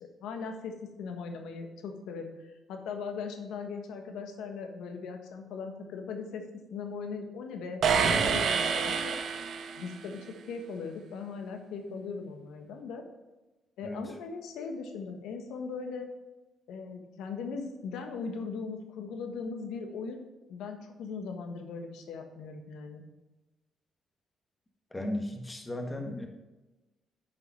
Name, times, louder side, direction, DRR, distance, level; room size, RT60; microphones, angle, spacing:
voice 1, 0.0-6.4 6.7-9.2 9.8-13.0 13.8-16.1 16.7-20.2 20.5-23.1, left 5 dB, 85° left, 5 dB, 1.4 m, -39 dB
sound 1, 7.8-10.1, right 6 dB, 65° right, 1.0 m, -27 dB
voice 2, 24.9-26.3, left 1 dB, 15° left, 3 dB, 1.6 m, -35 dB
10.0 x 5.6 x 5.6 m, 1.1 s
cardioid pair, 90°, 0 cm